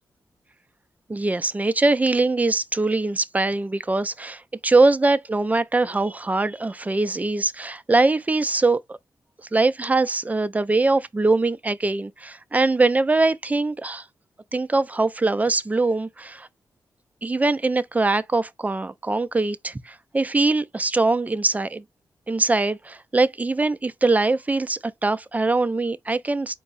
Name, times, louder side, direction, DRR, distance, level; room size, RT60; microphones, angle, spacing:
voice 1, 1.1-9.0 9.5-14.0 14.5-16.5 17.2-21.8 22.3-26.5, right 3 dB, 20° right, 0.4 m, -22 dB
4.4 x 2.0 x 3.8 m
cardioid pair, 70°, 8 cm